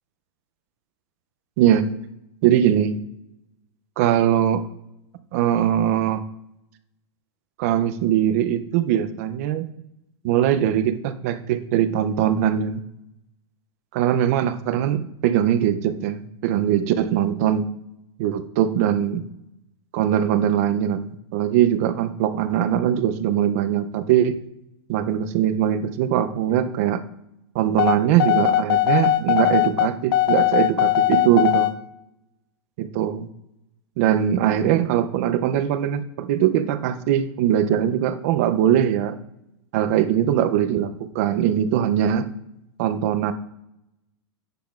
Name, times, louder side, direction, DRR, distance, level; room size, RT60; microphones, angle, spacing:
voice 1, 1.6-1.9 2.4-3.0 4.0-4.7 5.3-6.2 7.6-9.7 10.2-12.8 13.9-17.7 18.2-19.3 19.9-24.4 24.9-27.0 27.5-31.7 32.8-33.3 34.0-39.1 39.7-42.3 42.8-43.3, right 10 dB, 35° right, 11 dB, 0.4 m, -21 dB
morse-code, 27.8-31.7, left 12 dB, 50° left, 0.5 m, -20 dB
10.0 x 5.7 x 2.4 m, 0.83 s
supercardioid pair, 170°, 15 cm